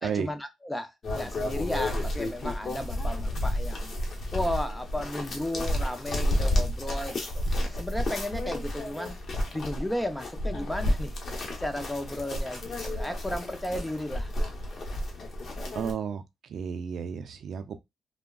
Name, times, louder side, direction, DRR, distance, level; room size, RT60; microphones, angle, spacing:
voice 1, 0.0-3.9 4.3-7.4 7.7-9.2 9.5-14.3, left 1 dB, 5° left, 0.5 m, -34 dB
sound 1, 1.0-15.9, left 1 dB, 45° left, 0.9 m, -31 dB
voice 2, 15.7-16.2 16.5-17.8, right 7 dB, 60° right, 0.4 m, -32 dB
3.4 x 2.1 x 2.3 m
cardioid pair, 90°, 0 cm